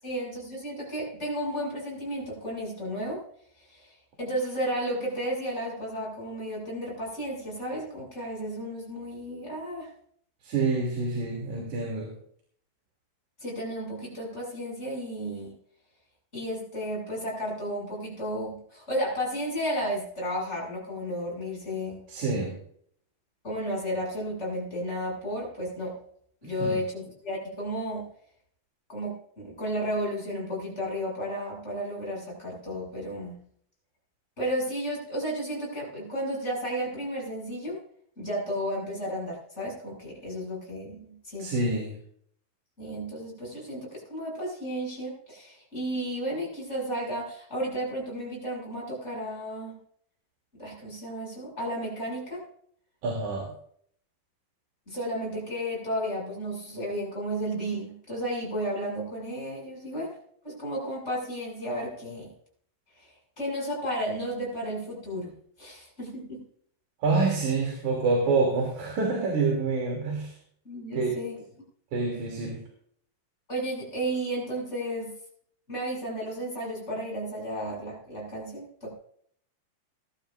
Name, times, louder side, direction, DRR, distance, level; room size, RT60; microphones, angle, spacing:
voice 1, 0.0-3.2 3.7-3.9 4.2-9.9 13.4-15.5 16.3-22.0 23.4-26.0 26.4-28.1 28.9-33.4 34.4-37.8 38.2-41.5 42.8-49.8 50.5-52.4 54.9-60.2 60.4-62.3 63.4-65.3 65.6-66.4 70.6-71.4 73.5-75.1 75.7-78.9, equal, 20° left, -2 dB, 7.0 m, -33 dB
voice 2, 10.4-12.1 22.1-22.5 26.6-26.8 41.4-41.9 53.0-53.5 67.0-70.3 70.9-71.1 71.9-72.6, right 3 dB, 60° right, -1 dB, 4.2 m, -27 dB
21.5 x 12.0 x 2.6 m, 0.63 s
omnidirectional pair, 4.0 m